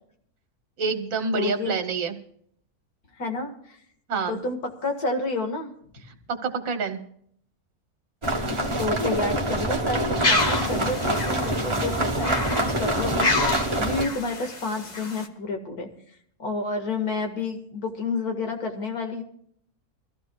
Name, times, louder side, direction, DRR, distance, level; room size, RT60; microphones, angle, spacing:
voice 1, 0.8-2.2 4.1-4.4 6.3-7.0, right 4 dB, 65° right, 7 dB, 1.5 m, -27 dB
voice 2, 1.3-1.7 3.2-3.8 4.3-5.7 8.8-15.9 16.4-19.2, left 3 dB, 75° left, 3 dB, 2.3 m, -30 dB
sound 1, 8.2-14.0, right 1 dB, 20° right, 1.2 m, -26 dB
sound 2, 10.2-15.3, left 2 dB, 30° left, 1.2 m, -28 dB
24.0 x 15.0 x 2.3 m, 0.66 s
omnidirectional pair, 1.6 m